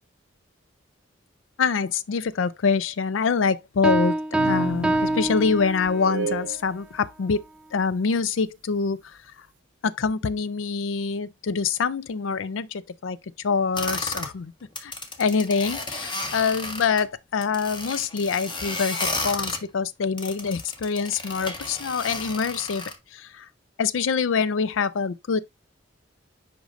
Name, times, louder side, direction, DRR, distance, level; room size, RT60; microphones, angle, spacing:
voice 1, 1.6-4.2 4.4-7.4 7.7-9.0 9.8-13.2 13.4-14.5 14.8-14.9 15.2-22.8 23.1-23.5 23.8-25.4, left 5 dB, 85° left, 0.5 m, -25 dB
Piano, 3.8-6.2, right 1 dB, 5° right, 0.3 m, -25 dB
sound 1, 4.4-6.6, right 4 dB, 70° right, 0.7 m, -32 dB
sound 2, 13.8-14.3 14.7-17.0 17.4-19.6 20.2-23.0, left 2 dB, 25° left, 1.1 m, -32 dB
8.1 x 5.2 x 2.5 m
head